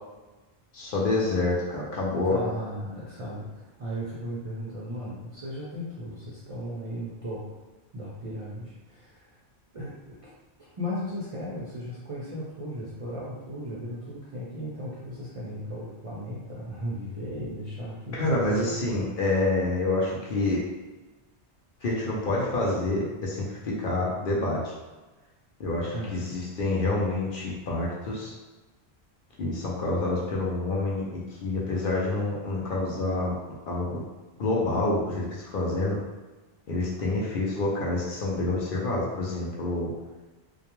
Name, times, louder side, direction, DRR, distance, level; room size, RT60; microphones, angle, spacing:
voice 1, 0.7-2.4 18.1-20.6 21.8-24.7 25.6-28.3 29.4-33.3 33.7-34.0 34.4-36.0 36.7-39.9, left 2 dB, 60° left, -4 dB, 0.6 m, -27 dB
voice 2, 2.2-7.4 7.9-9.3 9.7-9.9 10.6-18.7 25.9-26.2, equal, 45° right, -8 dB, 0.4 m, -36 dB
2.2 x 2.2 x 2.9 m, 1.2 s
omnidirectional pair, 1.1 m